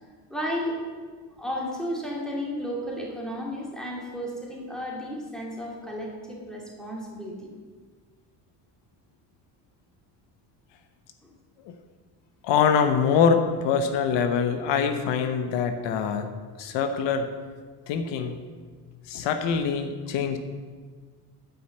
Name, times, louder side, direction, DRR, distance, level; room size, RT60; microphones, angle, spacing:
voice 1, 0.3-0.8 1.4-7.5 11.2-11.3, equal, ahead, -3 dB, 2.6 m, -33 dB
voice 2, 12.4-16.3 16.6-17.3 17.9-18.4 19.1-20.4, left 6 dB, 75° left, 8 dB, 0.9 m, -24 dB
9.3 x 5.6 x 7.8 m, 1.5 s
cardioid pair, 110°, 43 cm